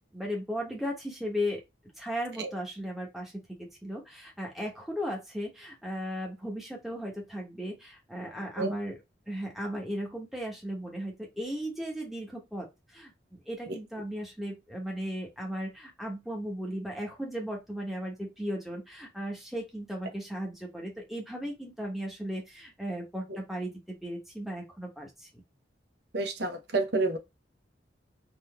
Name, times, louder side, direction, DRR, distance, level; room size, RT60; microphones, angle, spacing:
voice 1, 0.1-1.6 2.0-9.0 9.3-12.7 12.9-23.7 24.0-25.4, equal, ahead, 1.1 m, -36 dB
voice 2, 26.1-27.2, right 3 dB, 60° right, 0.8 m, -29 dB
3.7 x 2.7 x 2.3 m
head